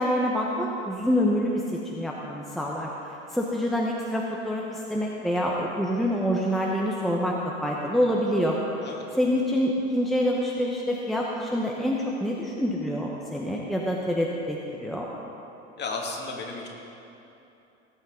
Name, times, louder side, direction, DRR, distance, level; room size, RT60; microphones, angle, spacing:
voice 1, 0.0-2.9 3.3-8.6 9.2-15.1, equal, ahead, -3 dB, 1.2 m, -26 dB
voice 2, 15.8-16.7, left 3 dB, 30° left, -1 dB, 2.5 m, -33 dB
19.5 x 8.7 x 4.0 m, 2.9 s
hypercardioid pair, 80°, 35 cm